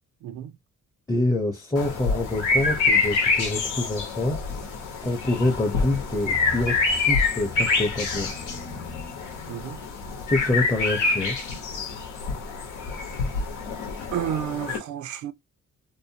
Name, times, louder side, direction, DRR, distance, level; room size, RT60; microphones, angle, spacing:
voice 1, 0.2-0.5 9.5-9.8 14.1-15.3, right 10 dB, 75° right, 0.5 m, -31 dB
voice 2, 1.1-4.4 5.0-6.8 7.0-8.3 10.3-11.4, left 2 dB, 10° left, 0.6 m, -26 dB
sound 1, 1.7-14.8, left 4 dB, 85° left, 0.9 m, -26 dB
2.7 x 2.1 x 2.7 m
cardioid pair, 90°, 30 cm